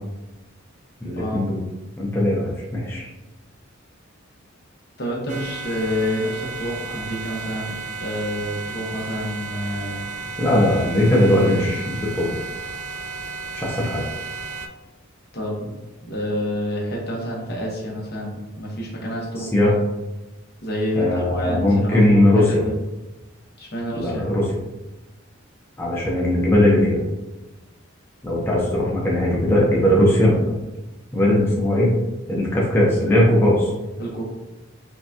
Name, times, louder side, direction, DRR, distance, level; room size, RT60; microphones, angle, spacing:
voice 1, 1.0-1.6 2.0-3.1 10.4-12.3 13.5-14.0 19.4-19.7 21.0-22.6 23.9-24.4 25.8-27.0 28.2-30.5 31.1-31.9 32.3-33.7, left 1 dB, 10° left, -5 dB, 0.6 m, -19 dB
voice 2, 5.0-10.0 15.3-15.6 16.0-19.7 20.6-22.7 23.6-24.3 34.0-34.2, equal, 50° left, -2 dB, 1.0 m, -28 dB
sound 1, 5.3-14.7, right 4 dB, 40° right, 0.3 m, -33 dB
5.6 x 2.3 x 2.8 m, 1.0 s
head